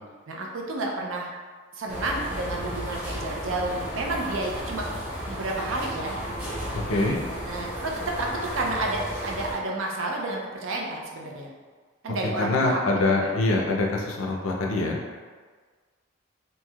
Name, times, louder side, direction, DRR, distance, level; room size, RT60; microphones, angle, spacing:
voice 1, 0.3-1.3 1.7-4.9 5.3-6.1 7.5-11.5 12.0-12.8 13.2-13.3, right 2 dB, 70° right, -1 dB, 0.5 m, -30 dB
sound 1, 1.9-9.5, equal, 10° right, 0.9 m, -34 dB
voice 2, 6.7-7.2 12.4-15.0, left 2 dB, 75° left, 0 dB, 0.5 m, -24 dB
3.0 x 2.7 x 2.3 m, 1.5 s
head